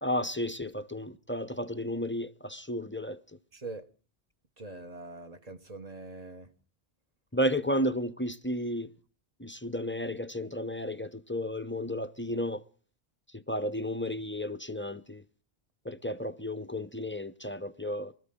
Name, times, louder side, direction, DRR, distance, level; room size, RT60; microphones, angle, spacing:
voice 1, 0.0-3.2 7.3-8.9 9.4-12.6 13.3-15.2 15.8-18.1, equal, 15° left, 0.6 m, -33 dB
voice 2, 3.5-3.8 4.6-6.5, right 3 dB, 35° right, 1.2 m, -43 dB
23.5 x 13.5 x 3.7 m
omnidirectional pair, 1.1 m